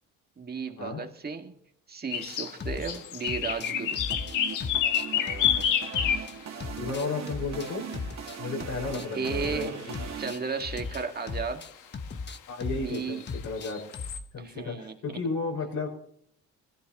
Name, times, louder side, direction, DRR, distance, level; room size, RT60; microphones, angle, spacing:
voice 1, 0.4-1.6 1.9-4.0 9.1-9.8 10.2-11.7 12.7-13.2 14.4-15.2, right 5 dB, 30° right, 5 dB, 1.9 m, -34 dB
sound 1, 2.1-2.5 2.8-6.4 7.6-7.7 9.0-9.1 9.9-10.0 10.2-10.3 10.9-11.0 12.5-12.6 13.2-14.2, left 9 dB, 90° left, 1.5 m, -28 dB
sound 2, 2.3-3.0 3.3-6.3 6.6-9.7 9.9-14.3, left 4 dB, 35° left, 1.1 m, -37 dB
sound 3, 3.5-10.3, right 7 dB, 60° right, 2.0 m, -40 dB
voice 2, 6.8-7.8 8.4-10.0 12.5-13.8 14.3-15.9, left 4 dB, 70° left, 0 dB, 5.5 m, -33 dB
20.5 x 15.0 x 3.0 m, 0.65 s
cardioid pair, 90°, 30 cm